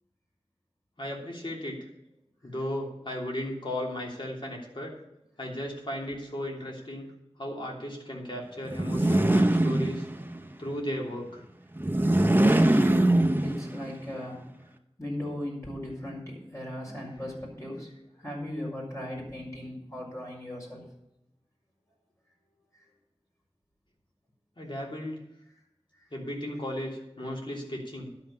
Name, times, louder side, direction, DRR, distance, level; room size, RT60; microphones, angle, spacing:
voice 1, 1.0-1.8 2.4-5.0 5.4-10.1 10.6-11.4 24.6-25.2 26.1-28.1, left 1 dB, 50° left, -2 dB, 3.1 m, -35 dB
sound 1, 8.7-10.4 11.8-13.9, right 1 dB, 20° right, 0.8 m, -23 dB
voice 2, 12.5-14.4 15.0-17.9 18.2-20.8, left 1 dB, 30° left, -3 dB, 5.1 m, -37 dB
11.5 x 5.8 x 8.5 m, 0.85 s
wide cardioid pair, 50°, 11 cm